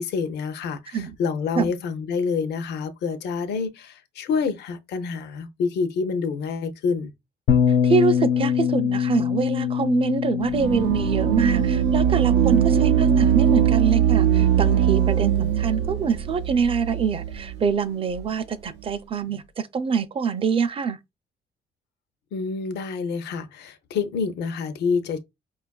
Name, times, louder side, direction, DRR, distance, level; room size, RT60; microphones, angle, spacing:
voice 1, 0.0-7.1 22.3-25.2, left 5 dB, 70° left, 0.6 m, -27 dB
Bass guitar, 7.5-13.7, left 8 dB, 85° left, 1.1 m, -24 dB
voice 2, 7.7-21.0, right 6 dB, 30° right, 0.4 m, -25 dB
sound 1, 10.5-17.6, right 9 dB, 85° right, 0.5 m, -21 dB
5.0 x 2.4 x 2.2 m
cardioid pair, 120°, 18 cm